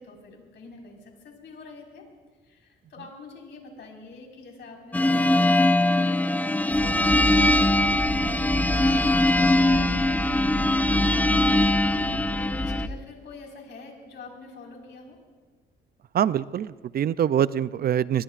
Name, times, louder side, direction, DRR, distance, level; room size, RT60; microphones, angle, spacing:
voice 1, 0.0-2.0 2.4-7.3 8.1-15.2, left 3 dB, 65° left, 0 dB, 4.7 m, -45 dB
sound 1, 4.9-12.9, left 1 dB, 10° left, 0.4 m, -22 dB
sound 2, 6.7-12.9, left 1 dB, 15° right, 4.3 m, -31 dB
voice 2, 16.1-18.2, right 10 dB, 50° right, 17 dB, 0.4 m, -24 dB
24.0 x 21.5 x 2.5 m, 1.4 s
cardioid pair, 90°, 20 cm